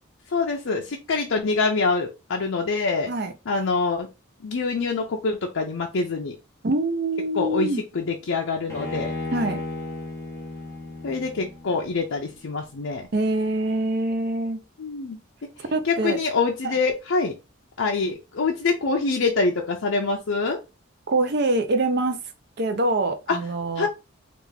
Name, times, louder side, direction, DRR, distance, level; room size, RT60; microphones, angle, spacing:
voice 1, 0.3-3.1 3.5-4.1 4.4-6.4 7.3-9.1 11.0-13.1 14.8-15.2 15.8-17.3 17.8-20.6 23.3-23.4 23.8-23.9, left 4 dB, 70° left, 0.5 m, -25 dB
voice 2, 6.6-7.8 9.3-9.6 13.1-14.6 15.7-16.2 16.6-16.7 21.1-22.2 22.6-23.9, right 2 dB, 50° right, 0.5 m, -24 dB
Bowed string instrument, 8.7-12.0, left 2 dB, 10° left, 0.8 m, -34 dB
3.4 x 2.4 x 3.3 m
head